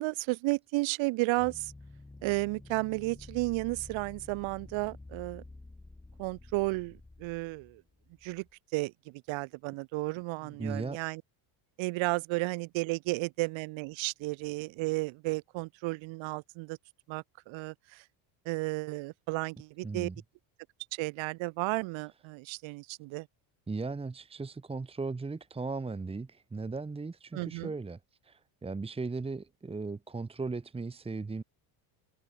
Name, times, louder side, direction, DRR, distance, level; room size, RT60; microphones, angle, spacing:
voice 1, 0.0-1.7 2.2-5.4 6.2-7.8 8.2-8.4 8.7-11.2 11.8-16.8 17.1-18.0 18.5-20.1 20.9-23.3 27.3-27.7, right 23 dB, 65° right, 2.3 m, -33 dB
sound 1, 1.4-8.5, left 2 dB, 10° left, 3.9 m, -50 dB
voice 2, 10.4-11.0 19.8-20.2 23.7-28.0 28.2-31.4, right 3 dB, 10° right, 1.9 m, -37 dB
cardioid pair, 150°, 50 cm